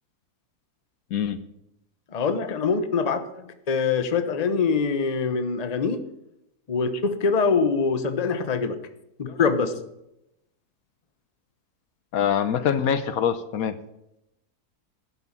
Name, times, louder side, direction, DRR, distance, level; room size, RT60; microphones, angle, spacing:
voice 1, 2.1-3.3 3.7-6.0 6.7-8.8 9.2-9.7, left 5 dB, 30° left, 10 dB, 0.9 m, -24 dB
voice 2, 12.1-13.8, left 8 dB, 70° left, 13 dB, 1.1 m, -24 dB
11.5 x 8.1 x 7.2 m, 0.84 s
omnidirectional pair, 1.7 m